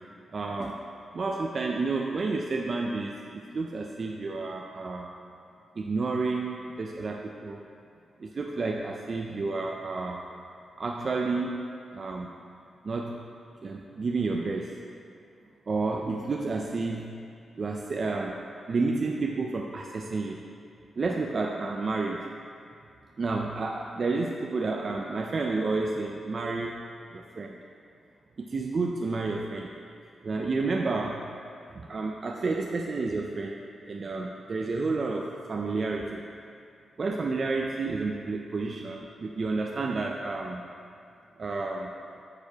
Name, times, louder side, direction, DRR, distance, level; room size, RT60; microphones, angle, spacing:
voice 1, 0.3-0.8 1.1-5.1 5.8-7.6 8.2-10.3 10.8-11.6 11.9-12.3 12.8-13.2 13.6-14.8 15.7-17.2 17.6-18.4 18.7-20.4 21.0-22.3 23.2-26.8 27.1-27.6 28.4-29.7 30.2-31.3 31.7-33.6 33.9-36.2 37.0-40.7 41.4-41.9, right 3 dB, 35° right, 0 dB, 0.3 m, -30 dB
8.9 x 6.7 x 2.8 m, 2.4 s
wide cardioid pair, 175°, 0 cm